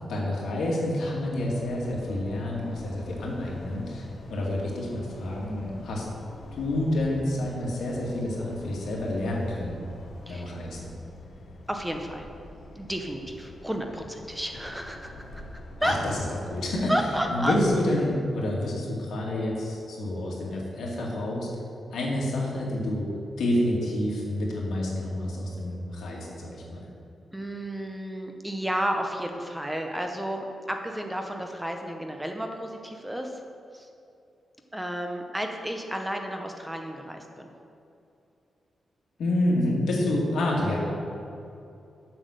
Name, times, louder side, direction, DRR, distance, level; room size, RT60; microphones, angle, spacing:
voice 1, 0.1-6.1 6.5-9.8 10.3-10.9 15.8-16.2 16.5-16.9 17.3-21.5 21.9-23.1 23.4-26.9 39.2-40.8, left 1 dB, 80° left, -3 dB, 2.2 m, -28 dB
sound 1, 1.0-17.8, left 2 dB, 55° left, 1.0 m, -45 dB
voice 2, 10.3-10.6 11.7-12.3 12.7-15.2 15.8-15.9 16.9-17.5 27.3-33.4 33.7-33.9 34.7-37.5, equal, 5° right, 3 dB, 0.7 m, -32 dB
7.5 x 7.1 x 6.5 m, 2.7 s
wide cardioid pair, 155°, 0 cm